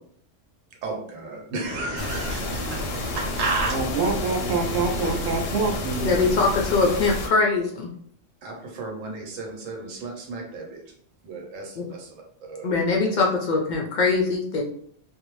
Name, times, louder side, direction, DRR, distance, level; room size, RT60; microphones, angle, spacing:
voice 1, 0.8-3.8 8.4-10.8 11.2-12.2 12.5-12.7, right 3 dB, 90° right, 1 dB, 1.1 m, -33 dB
sound 1, 1.6-7.0, right 1 dB, 15° right, 0.5 m, -36 dB
sound 2, 2.0-7.3, left 2 dB, 90° left, 1.0 m, -31 dB
voice 2, 3.7-6.1, right 4 dB, 60° right, 2 dB, 0.5 m, -26 dB
voice 3, 6.0-7.9 11.8-11.9 12.6-14.6, left 4 dB, 65° left, 0 dB, 0.4 m, -22 dB
2.6 x 2.0 x 3.0 m, 0.63 s
omnidirectional pair, 1.3 m